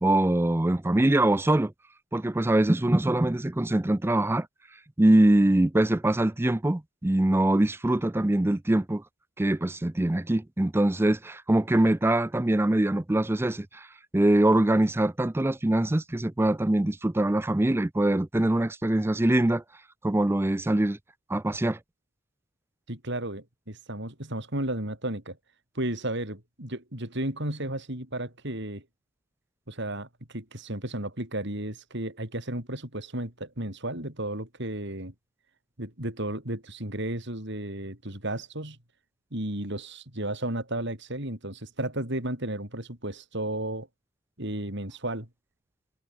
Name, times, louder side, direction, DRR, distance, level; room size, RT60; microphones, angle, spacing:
voice 1, 0.0-1.7 2.1-4.5 5.0-9.0 9.4-13.9 14.1-19.6 20.0-21.0 21.3-21.8, right 1 dB, 10° right, 0.4 m, -23 dB
voice 2, 22.9-25.4 25.8-28.8 29.7-35.1 35.8-38.8 39.3-43.9 44.4-45.3, right 1 dB, 55° right, 5.5 m, -33 dB
head